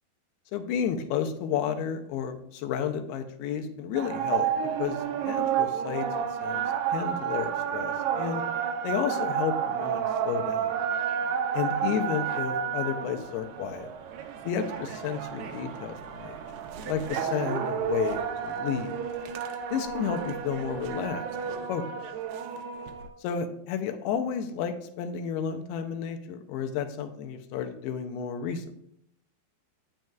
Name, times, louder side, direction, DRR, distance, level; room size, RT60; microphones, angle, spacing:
voice 1, 0.5-4.5 4.8-8.4 8.8-10.7 11.5-13.9 14.5-16.4 16.8-19.0 19.7-21.3 21.7-21.8 23.2-28.6, left 8 dB, 85° left, 7 dB, 2.6 m, -32 dB
sound 1, 4.0-23.1, right 8 dB, 90° right, 2.0 m, -31 dB
8.9 x 6.3 x 2.3 m, 0.73 s
omnidirectional pair, 4.5 m